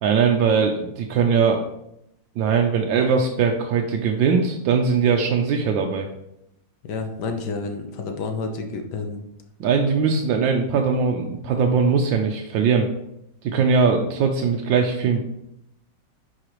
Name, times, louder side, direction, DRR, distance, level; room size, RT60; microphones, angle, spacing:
voice 1, 0.0-1.6 2.4-6.1 9.6-12.9 13.4-15.3, right 5 dB, 80° right, 3 dB, 1.4 m, -20 dB
voice 2, 6.8-9.2, left 4 dB, 65° left, 4 dB, 1.5 m, -30 dB
9.8 x 4.9 x 3.0 m, 0.81 s
omnidirectional pair, 2.0 m